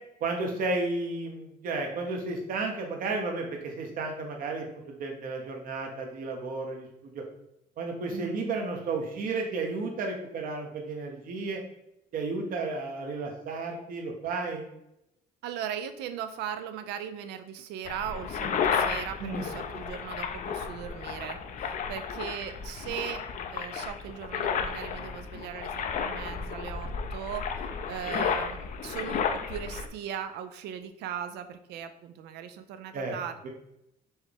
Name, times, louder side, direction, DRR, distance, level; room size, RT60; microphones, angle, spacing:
voice 1, 0.2-6.9 7.1-7.2 7.8-11.6 12.1-14.7 19.2-19.4 32.9-33.2 33.4-33.5, right 3 dB, 55° right, 2 dB, 0.9 m, -33 dB
voice 2, 8.1-8.4 15.4-23.2 23.5-33.5, right 9 dB, 80° right, 9 dB, 0.5 m, -38 dB
sound 1, 17.9-29.9, left 6 dB, 50° left, 0.5 m, -33 dB
4.4 x 3.4 x 3.4 m, 0.81 s
cardioid pair, 110°, 17 cm